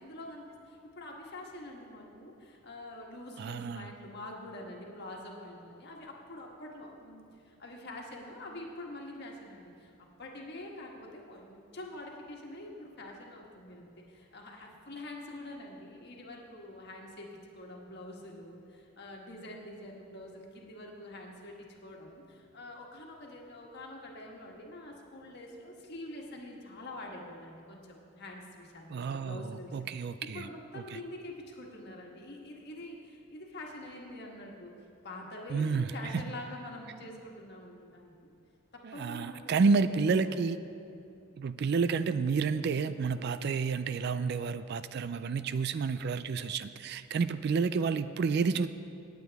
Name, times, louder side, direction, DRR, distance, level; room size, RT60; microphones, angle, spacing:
voice 1, 0.0-9.9 10.2-29.8 30.2-34.7 35.0-38.3 38.7-40.0 40.3-40.4, left 1 dB, 50° left, 0 dB, 1.5 m, -46 dB
voice 2, 3.4-3.9 28.9-30.5 30.7-31.0 35.5-36.2 38.8-40.6 41.4-48.7, right 5 dB, 50° right, 13 dB, 0.3 m, -30 dB
18.5 x 8.3 x 3.5 m, 2.6 s
head